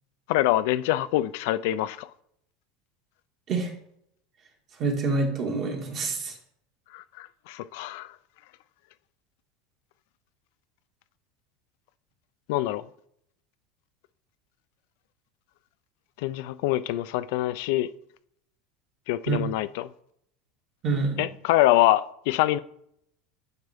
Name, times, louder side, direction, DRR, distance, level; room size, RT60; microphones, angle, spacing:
voice 1, 0.3-2.1 6.9-8.1 12.5-12.8 16.2-17.9 19.1-19.9 21.2-22.6, left 15 dB, 70° left, 0.4 m, -25 dB
voice 2, 4.8-6.3 19.3-19.4 20.8-21.3, right 4 dB, 35° right, 1.7 m, -26 dB
9.5 x 5.4 x 3.5 m
supercardioid pair, 145°, 0 cm